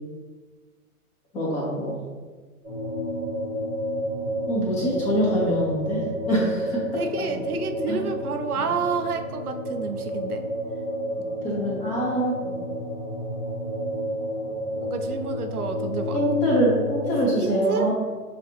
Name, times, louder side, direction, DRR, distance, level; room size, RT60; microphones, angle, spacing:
voice 1, 1.3-2.0 4.5-6.8 7.3-7.4 7.9-8.0 11.4-12.5 16.1-17.9, equal, 15° left, -4 dB, 0.9 m, -24 dB
sound 1, 2.6-17.3, equal, 5° right, 0.4 m, -30 dB
voice 2, 6.9-10.5 14.8-16.2 17.4-17.9, right 5 dB, 80° right, 5 dB, 0.6 m, -30 dB
6.5 x 2.5 x 2.9 m, 1.4 s
figure-of-eight pair, 115°, 45 cm